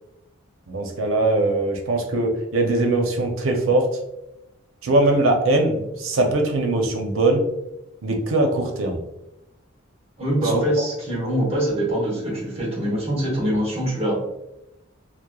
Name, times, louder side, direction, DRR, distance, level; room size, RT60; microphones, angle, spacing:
voice 1, 0.7-3.9 4.8-7.4 8.0-9.0 10.5-10.6, right 2 dB, 90° right, 3 dB, 0.5 m, -21 dB
voice 2, 10.2-14.1, right 1 dB, 30° right, -4 dB, 1.0 m, -23 dB
3.0 x 2.1 x 2.2 m, 0.89 s
head